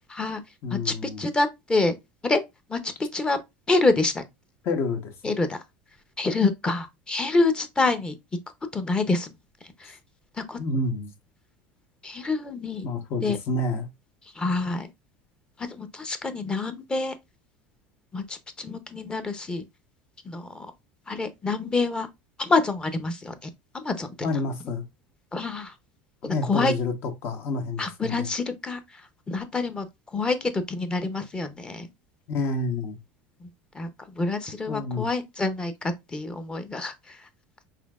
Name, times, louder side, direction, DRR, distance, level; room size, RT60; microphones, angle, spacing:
voice 1, 0.1-0.4 0.7-1.9 2.2-2.4 2.7-3.4 3.7-4.2 5.2-5.6 6.2-8.1 8.7-9.3 9.8-9.9 10.5-10.6 12.0-12.9 13.2-13.4 14.4-14.9 15.8-17.1 18.1-19.6 20.3-20.7 21.1-22.1 22.4-23.5 23.7-24.1 25.3-25.7 26.2-26.7 27.8-28.8 29.3-29.9 30.1-31.9 33.4-33.5 33.7-33.9 34.1-37.2, left 3 dB, 15° left, 0.7 m, -26 dB
voice 2, 0.6-1.3 4.6-5.3 10.6-11.1 12.8-13.9 24.2-24.8 26.2-28.3 32.3-33.0 34.7-35.1, left 3 dB, 50° left, 1.1 m, -29 dB
4.2 x 3.5 x 2.4 m
supercardioid pair, 115°, 5 cm